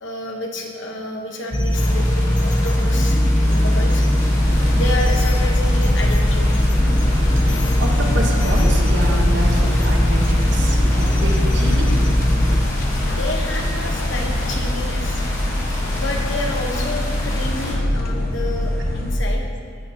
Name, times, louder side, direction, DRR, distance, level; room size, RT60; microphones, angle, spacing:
voice 1, 0.0-4.1 4.7-6.5 13.0-15.2 15.9-19.4, left 2 dB, 65° left, 1 dB, 1.2 m, -30 dB
sound 1, 1.5-12.6, equal, 25° left, 0.8 m, -19 dB
sound 2, 1.7-17.7, left 1 dB, 90° left, 2.6 m, -32 dB
sound 3, 4.4-19.2, left 1 dB, 50° left, 1.0 m, -23 dB
voice 2, 7.8-11.9, right 1 dB, 65° right, 0 dB, 1.3 m, -27 dB
11.5 x 8.7 x 2.9 m, 2.1 s
head